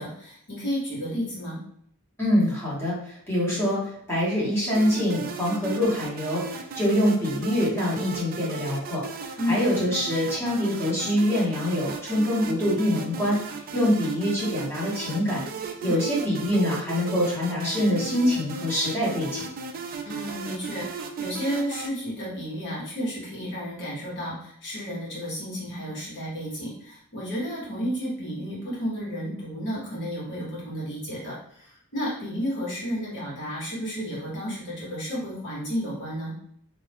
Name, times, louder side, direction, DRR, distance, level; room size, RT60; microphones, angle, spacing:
voice 1, 0.0-1.6 9.4-9.6 15.8-16.0 20.0-36.3, equal, 55° left, -6 dB, 1.4 m, -32 dB
voice 2, 2.2-3.8 4.1-9.0 9.5-13.4 13.7-19.4, left 1 dB, 10° left, -7 dB, 1.3 m, -25 dB
sound 1, 4.7-21.9, right 5 dB, 40° right, 0.3 m, -36 dB
2.6 x 2.5 x 3.5 m, 0.67 s
head